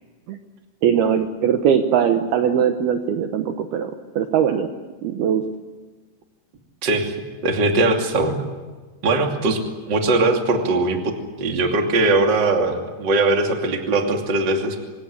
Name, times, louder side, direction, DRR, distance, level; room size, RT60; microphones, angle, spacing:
voice 1, 0.8-4.7 5.0-5.4, right 8 dB, 70° right, 6 dB, 2.6 m, -20 dB
voice 2, 6.8-7.2 7.4-8.4 9.0-9.6 9.9-14.8, right 2 dB, 30° right, 3 dB, 2.4 m, -20 dB
26.0 x 18.0 x 9.9 m, 1.3 s
omnidirectional pair, 5.4 m